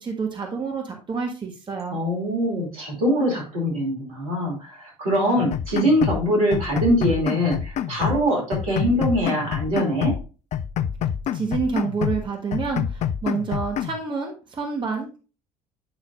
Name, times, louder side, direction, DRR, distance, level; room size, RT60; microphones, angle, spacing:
voice 1, 0.0-2.0 11.3-15.2, right 5 dB, 25° right, 2 dB, 1.4 m, -28 dB
voice 2, 1.9-10.1, equal, 70° right, -2 dB, 2.6 m, -23 dB
sound 1, 5.4-6.2 6.5-8.2 8.5-10.2 10.5-12.2 12.5-14.0, left 9 dB, 40° left, 0.4 m, -27 dB
8.8 x 5.5 x 2.4 m, 0.34 s
figure-of-eight pair, 55°, 18 cm